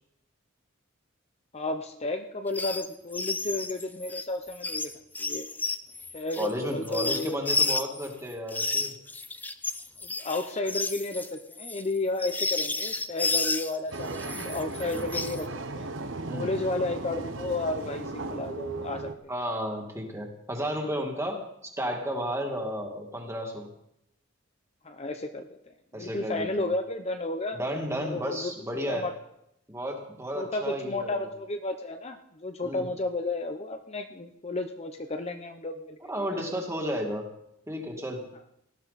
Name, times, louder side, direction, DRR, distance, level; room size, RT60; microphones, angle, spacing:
voice 1, 1.5-4.9 5.2-5.5 6.1-7.4 10.0-15.5 15.7-15.9 16.3-19.1 24.8-25.5 25.9-27.6 28.0-28.5 28.9-29.1 30.3-36.0 36.3-36.4, left 2 dB, 30° left, 6 dB, 0.8 m, -32 dB
sound 1, 2.5-2.9 3.1-8.1 8.5-13.8 14.1-15.4, left 3 dB, 10° left, 0.5 m, -31 dB
voice 2, 6.4-8.9 14.9-15.0 16.3-16.5 19.3-23.7 25.9-26.7 27.5-29.1 29.7-31.2 32.6-32.9 36.1-37.2 37.7-38.2, equal, 15° right, 1 dB, 2.3 m, -33 dB
sound 2, 13.9-19.1, right 3 dB, 70° right, 1.1 m, -36 dB
18.0 x 13.5 x 4.2 m, 0.80 s
head